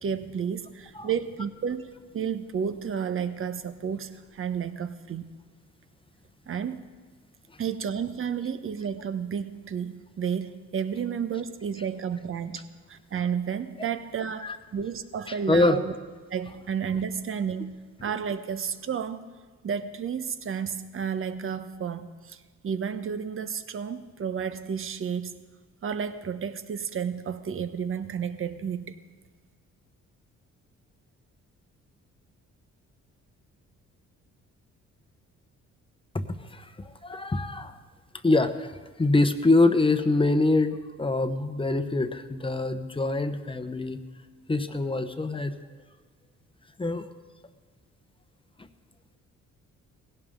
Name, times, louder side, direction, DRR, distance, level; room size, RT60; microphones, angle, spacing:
voice 1, 0.0-5.3 6.5-6.8 7.6-15.9 16.3-19.2 19.6-25.3 25.8-29.0, right 7 dB, 45° right, 11 dB, 1.0 m, -32 dB
voice 2, 15.3-15.8 36.1-37.8 38.2-44.0 44.5-45.5 46.8-47.1 48.6-48.7, left 2 dB, 15° left, 8 dB, 1.0 m, -25 dB
19.0 x 16.5 x 3.7 m, 1.5 s
cardioid pair, 90°, 30 cm